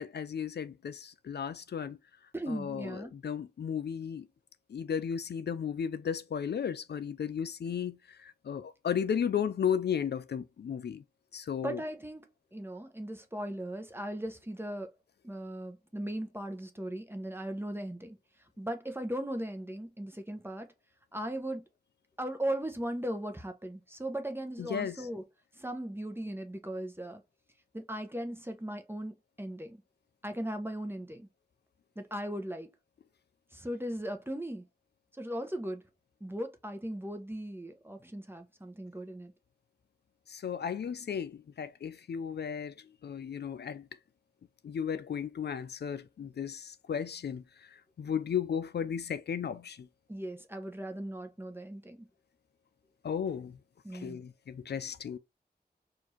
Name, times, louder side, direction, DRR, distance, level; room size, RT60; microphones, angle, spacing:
voice 1, 0.0-2.0 2.5-4.3 4.7-11.0 11.3-11.8 24.6-25.1 40.3-42.7 43.0-43.9 44.6-47.4 47.7-49.9 53.0-53.6 53.9-55.2, left 7 dB, 75° left, 0.4 m, -34 dB
voice 2, 2.3-3.1 11.6-12.2 12.5-14.9 15.2-18.2 18.6-20.7 21.1-21.6 22.2-25.2 25.6-27.2 27.7-29.8 30.2-31.3 32.0-32.7 33.5-34.6 35.2-35.8 36.2-39.3 50.1-52.1 53.8-54.2, right 1 dB, 15° right, 0.9 m, -38 dB
4.5 x 2.6 x 2.8 m
cardioid pair, 45°, 17 cm